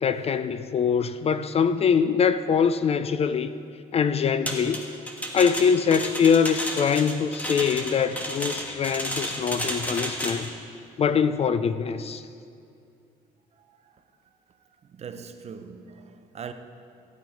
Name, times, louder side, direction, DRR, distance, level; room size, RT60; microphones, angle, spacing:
voice 1, 0.0-3.5 3.9-4.8 5.3-10.5 11.0-12.2, left 6 dB, 35° left, 0.4 m, -23 dB
sound 1, 4.5-10.5, equal, 10° left, 1.5 m, -32 dB
voice 2, 13.5-14.0 14.9-16.5, right 6 dB, 40° right, 0.8 m, -41 dB
15.0 x 9.0 x 5.1 m
cardioid pair, 110°, 17 cm